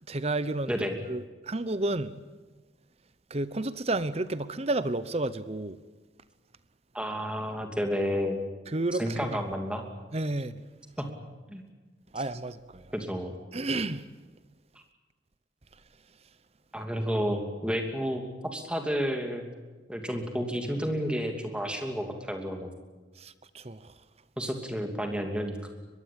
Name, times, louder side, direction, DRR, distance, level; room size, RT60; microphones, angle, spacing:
voice 1, 0.1-0.7 1.1-2.2 3.3-5.8 8.7-9.4 10.1-10.6 12.1-12.9 13.5-14.1 23.2-23.9, right 2 dB, 30° right, 0.8 m, -31 dB
voice 2, 6.9-8.4 9.0-9.8 11.0-11.1 11.5-11.6 12.9-13.3 16.7-19.4 19.9-22.7 24.4-25.7, equal, 5° right, 2.8 m, -31 dB
23.5 x 21.5 x 8.7 m
head